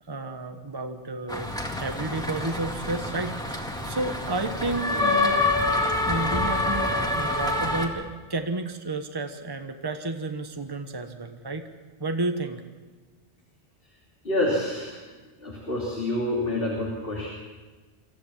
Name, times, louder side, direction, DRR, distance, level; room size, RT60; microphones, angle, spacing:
voice 1, 0.1-1.5 1.8-5.4 5.8-11.7 12.0-12.6, right 2 dB, 20° right, 6 dB, 1.2 m, -31 dB
sound 1, 1.3-7.9, left 2 dB, 5° left, 2.0 m, -26 dB
voice 2, 14.2-15.0 15.4-17.3, left 1 dB, 55° left, -3 dB, 3.4 m, -27 dB
24.5 x 14.5 x 7.3 m, 1.3 s
omnidirectional pair, 1.1 m